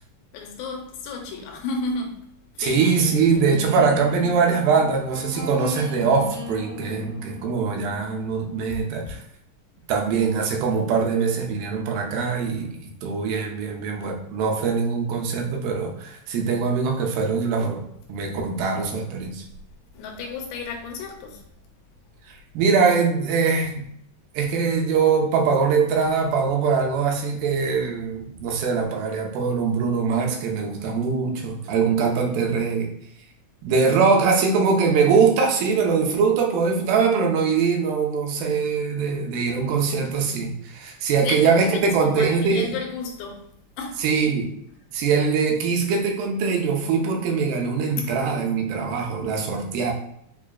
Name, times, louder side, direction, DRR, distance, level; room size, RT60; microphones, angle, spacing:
voice 1, 0.3-2.2 2.6-2.8 19.9-21.4 41.2-43.4 43.8-44.0 48.0-48.1, left 4 dB, 85° left, 2.3 m, -32 dB
voice 2, 2.6-9.2 9.9-17.8 18.1-19.4 22.5-23.8 24.3-32.9 33.6-42.8 44.0-44.5 44.9-49.9, right 5 dB, 90° right, 2.4 m, -22 dB
sound 1, 2.7-8.6, left 2 dB, 55° right, 2.4 m, -35 dB
5.8 x 2.4 x 2.2 m
omnidirectional pair, 4.0 m